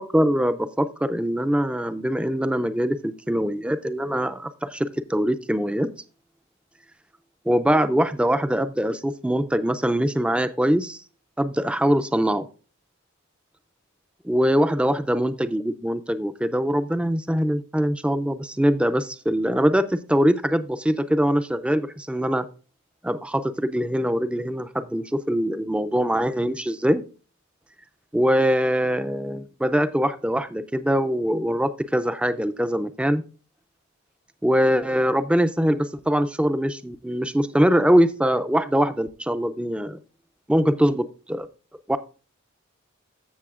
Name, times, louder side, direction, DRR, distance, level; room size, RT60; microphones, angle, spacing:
voice 1, 0.0-5.9 7.5-11.0 11.4-12.5 14.2-22.4 23.0-27.0 28.1-33.2 34.4-40.0 40.5-41.5 41.9-42.0, equal, 5° right, 12 dB, 0.4 m, -23 dB
14.5 x 6.6 x 2.4 m, 0.37 s
head